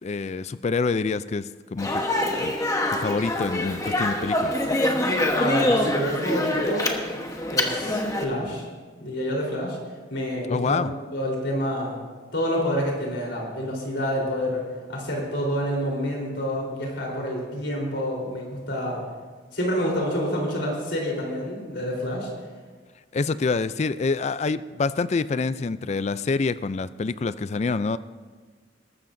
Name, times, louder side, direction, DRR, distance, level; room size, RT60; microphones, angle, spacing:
voice 1, 0.0-2.0 2.4-2.5 2.9-4.5 10.5-10.9 23.1-28.0, left 4 dB, 35° left, 15 dB, 0.4 m, -26 dB
Speech, 1.8-8.2, left 1 dB, 20° left, 1.1 m, -25 dB
voice 2, 5.3-7.2 7.5-8.6 9.0-9.8 10.1-12.0 12.3-14.6 14.9-19.0 19.5-22.3, equal, 75° left, -2 dB, 3.9 m, -28 dB
22.0 x 13.0 x 2.6 m, 1.4 s
head